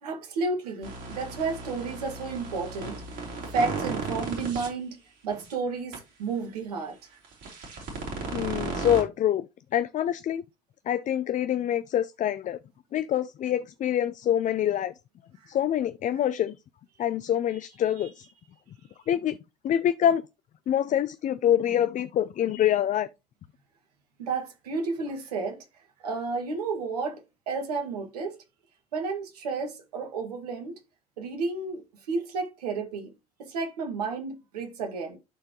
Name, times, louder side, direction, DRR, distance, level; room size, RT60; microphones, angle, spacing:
voice 1, 0.0-5.0 5.2-7.2 15.4-15.5 24.2-25.6 26.0-28.4 28.9-30.8 31.2-33.1 33.4-35.2, right 4 dB, 80° right, 1.9 m, -32 dB
sound 1, 0.8-4.7 5.3-5.5 5.9-6.0 7.2-9.0, right 4 dB, 60° right, 3.6 m, -35 dB
voice 2, 8.3-10.4 10.9-12.6 12.9-14.9 15.5-16.6 17.0-18.3 19.1-19.4 19.6-20.2 20.7-23.1, left 10 dB, 40° left, 0.5 m, -26 dB
12.0 x 4.4 x 3.0 m
hypercardioid pair, 60°, 20 cm